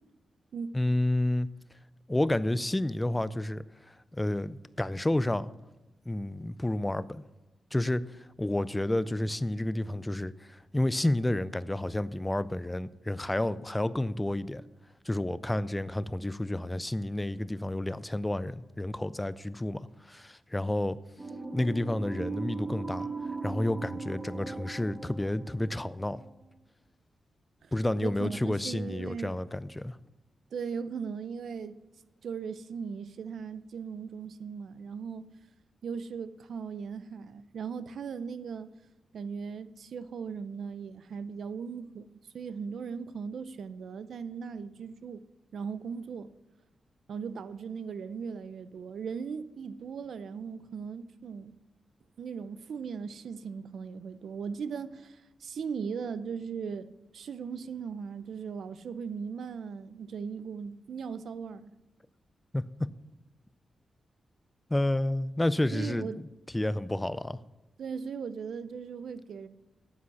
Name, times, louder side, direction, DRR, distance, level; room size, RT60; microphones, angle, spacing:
voice 1, 0.7-1.5 2.1-5.5 6.1-7.2 7.7-14.6 15.1-21.0 21.5-23.1 23.4-26.2 27.7-30.0 62.5-62.6 64.7-66.3 66.5-67.4, left 1 dB, 10° left, 0.4 m, -30 dB
sound 1, 21.2-26.5, right 3 dB, 15° right, 1.3 m, -39 dB
voice 2, 28.0-29.4 30.5-31.8 32.2-35.3 35.8-38.7 39.1-45.2 45.5-46.3 47.1-51.5 52.2-56.9 57.1-61.7 65.7-66.2 67.8-69.5, right 6 dB, 65° right, 0.6 m, -38 dB
9.4 x 8.6 x 7.0 m
wide cardioid pair, 165°, 0 cm